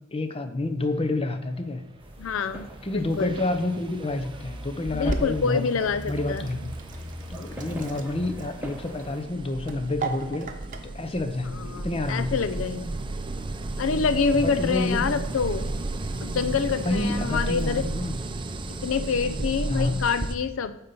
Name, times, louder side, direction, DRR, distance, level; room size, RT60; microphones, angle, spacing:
voice 1, 0.1-1.8 2.8-5.7 6.1-6.7 7.3-10.5 10.8-12.4 14.3-15.0 16.8-18.2 19.7-20.1, left 2 dB, 30° left, 9 dB, 0.7 m, -29 dB
sound 1, 2.0-9.2, equal, 10° right, 1.2 m, -40 dB
voice 2, 2.2-3.3 4.9-6.4 11.5-12.9 13.8-15.7 16.2-17.9 18.8-20.8, left 5 dB, 80° left, 12 dB, 0.5 m, -26 dB
sound 2, 2.6-2.7 3.1-20.4, right 2 dB, 25° right, 0.5 m, -34 dB
Sink (filling or washing), 4.8-20.3, right 3 dB, 40° right, 0.9 m, -41 dB
9.4 x 4.1 x 6.8 m, 0.86 s
head